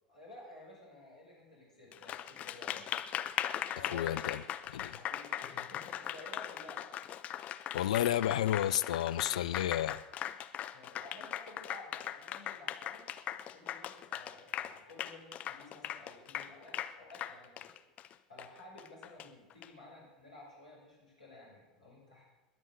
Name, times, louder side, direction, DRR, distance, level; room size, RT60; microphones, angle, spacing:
voice 1, 0.1-2.9 3.8-4.3 4.8-6.9 10.7-13.1 13.5-17.7 18.3-22.2, left 1 dB, 80° left, 6.2 m, -53 dB
Applause, 1.9-19.7, left 11 dB, 35° left, 0.7 m, -39 dB
voice 2, 3.9-4.4 4.7-5.0 7.7-10.0, left 11 dB, 65° left, 0.4 m, -31 dB
21.0 x 7.2 x 6.9 m
figure-of-eight pair, 80°, 4 cm